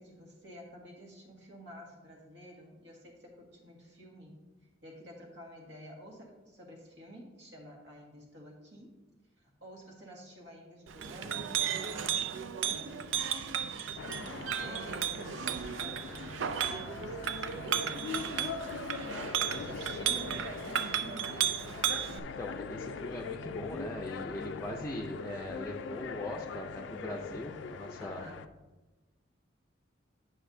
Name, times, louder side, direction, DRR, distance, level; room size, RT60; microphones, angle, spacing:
voice 1, 0.0-4.4 4.8-9.0 9.4-12.2 12.6-15.5 15.8-19.2 19.5-21.6 28.0-28.4, equal, 65° right, -1 dB, 1.7 m, -50 dB
Chink clink, 10.9-22.2, right 9 dB, 85° right, 0.5 m, -34 dB
sound 1, 14.0-28.5, left 5 dB, 70° left, 0.4 m, -42 dB
Wind instrument woodwind instrument, 16.8-21.5, right 5 dB, 20° right, 1.1 m, -53 dB
voice 2, 22.0-28.3, left 1 dB, 15° left, -1 dB, 0.5 m, -41 dB
9.8 x 6.1 x 2.7 m, 1.2 s
head